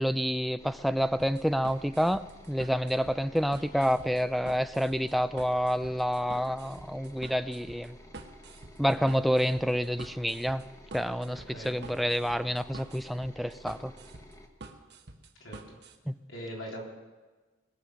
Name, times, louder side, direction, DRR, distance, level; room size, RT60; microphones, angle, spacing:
voice 1, 0.0-8.0 8.8-10.6 10.9-13.9 16.1-16.2, equal, ahead, 13 dB, 0.3 m, -28 dB
sound 1, 0.6-14.5, left 1 dB, 15° left, 1.1 m, -52 dB
sound 2, 1.2-16.0, right 2 dB, 55° right, 1.2 m, -48 dB
voice 2, 3.5-3.9 11.3-11.7 15.4-15.8 16.3-16.8, equal, 70° left, -3 dB, 3.9 m, -42 dB
21.0 x 7.1 x 6.4 m, 1.3 s
head